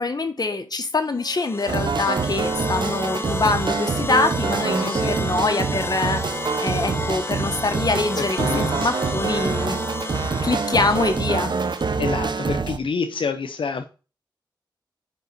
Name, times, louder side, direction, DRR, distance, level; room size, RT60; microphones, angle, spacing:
voice 1, 0.0-6.2 6.6-9.8 10.4-11.5, left 3 dB, 50° left, 1.4 m, -24 dB
sound 1, 1.1-12.4, left 2 dB, 30° left, 0.6 m, -32 dB
sound 2, 1.7-12.8, right 4 dB, 60° right, 0.6 m, -26 dB
voice 2, 4.8-5.1 8.1-8.9 12.0-13.8, left 5 dB, 80° left, 0.5 m, -28 dB
5.2 x 5.1 x 6.4 m
cardioid pair, 50°, 9 cm